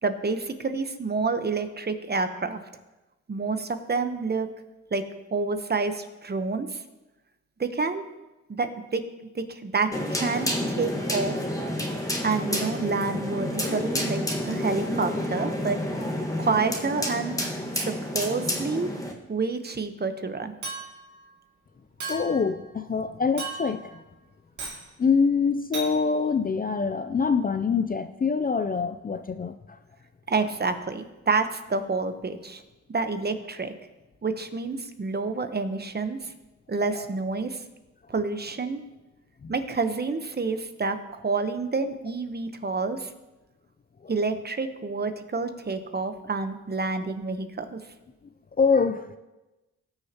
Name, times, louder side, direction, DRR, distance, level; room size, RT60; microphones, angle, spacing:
voice 1, 0.0-2.6 3.3-4.5 4.9-5.0 5.3-6.8 7.6-8.0 8.6-11.5 12.2-15.8 16.4-18.9 19.3-20.5 30.3-32.6 32.9-33.7 34.2-36.3 36.7-37.6 38.1-38.8 39.5-43.1 44.1-47.8, right 4 dB, 35° right, 9 dB, 0.9 m, -28 dB
sound 1, 9.9-19.1, left 1 dB, 10° left, 1.6 m, -29 dB
Chink clink, 20.6-21.1 22.0-22.5 23.4-23.9 24.6-24.8 25.7-25.9, right 3 dB, 75° right, 2.5 m, -35 dB
voice 2, 22.1-24.0 25.0-29.8 39.4-39.5 44.0-44.1 48.6-49.2, left 5 dB, 30° left, 9 dB, 0.4 m, -25 dB
18.0 x 6.6 x 2.9 m, 1.1 s
cardioid pair, 75°, 30 cm